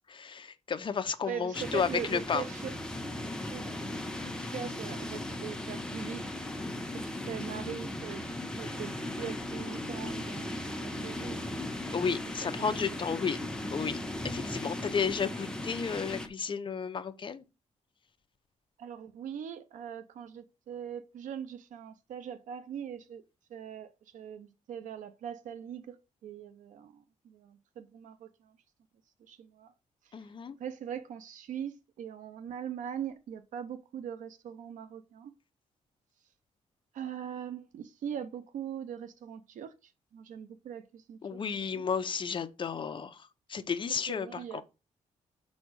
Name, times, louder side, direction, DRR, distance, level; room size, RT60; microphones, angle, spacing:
voice 1, 0.1-2.4 11.9-13.4 13.7-14.0 14.2-17.4 30.1-30.5 41.2-44.6, left 6 dB, 40° left, 0.8 m, -33 dB
voice 2, 1.2-2.7 3.5-3.7 4.2-6.3 6.9-8.3 8.6-11.5 12.4-12.5 18.8-23.2 23.5-28.6 29.2-29.7 30.0-30.2 30.6-35.3 36.9-41.4 41.7-41.8 44.1-44.6, right 8 dB, 85° right, 0.7 m, -41 dB
sound 1, 1.5-16.3, left 1 dB, 5° left, 1.1 m, -37 dB
5.9 x 4.2 x 6.3 m
cardioid pair, 115°, 13 cm